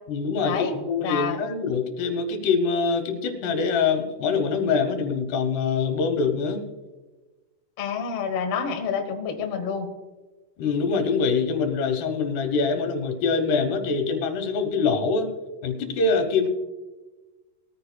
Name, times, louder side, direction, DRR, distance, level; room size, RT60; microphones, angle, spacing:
voice 1, 0.1-6.7 10.6-15.3 15.6-16.5, left 4 dB, 80° left, 6 dB, 3.2 m, -24 dB
voice 2, 1.0-1.4 7.8-9.9, left 6 dB, 55° left, 3 dB, 1.8 m, -28 dB
20.5 x 14.0 x 2.2 m, 1.2 s
omnidirectional pair, 4.7 m